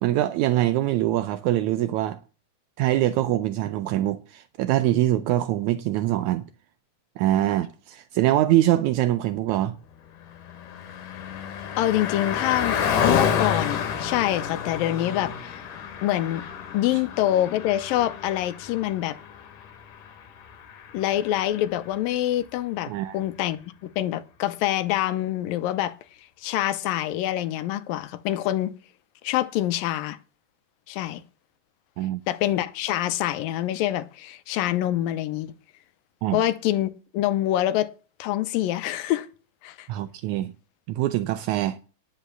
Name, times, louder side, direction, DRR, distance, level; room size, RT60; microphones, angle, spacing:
voice 1, 0.0-2.2 2.8-6.4 7.2-9.8 16.9-17.0 22.9-23.2 32.0-32.2 36.2-36.4 39.9-40.5 40.9-41.8, right 14 dB, 80° right, 1.7 m, -23 dB
Car passing by, 10.0-21.7, left 7 dB, 65° left, 2.9 m, -30 dB
voice 2, 11.8-15.6 16.0-16.4 16.7-19.2 20.9-26.0 26.4-28.7 29.2-30.2 30.9-31.2 32.3-35.5 36.3-37.9 38.2-39.3 39.6-39.9, left 13 dB, 80° left, 2.5 m, -26 dB
10.0 x 8.1 x 7.0 m
omnidirectional pair, 4.1 m